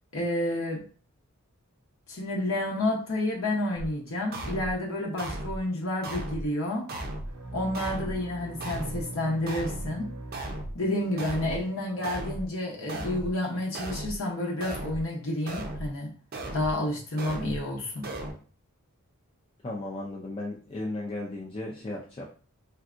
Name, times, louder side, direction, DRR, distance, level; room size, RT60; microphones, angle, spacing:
voice 1, 0.1-0.8 2.1-6.8 7.5-10.1 10.7-16.1 16.5-18.1, left 1 dB, 65° left, -2 dB, 0.8 m, -30 dB
sound 1, 3.8-3.9 4.3-4.7 5.2-5.6 6.0-6.5 6.9-7.3 7.7-8.2 8.6-9.0 9.5-9.9 10.3-10.7 11.2-11.6 12.0-12.5 12.9-13.3 13.7-14.2 14.6-15.0 15.5-15.9 16.3-16.7 17.2-17.6 18.0-18.3, right 1 dB, 45° right, 0.5 m, -35 dB
sound 2, 7.3-11.1, right 2 dB, 85° right, 0.7 m, -42 dB
voice 2, 19.6-22.3, left 2 dB, 25° left, -4 dB, 0.4 m, -35 dB
3.4 x 2.6 x 2.4 m, 0.41 s
head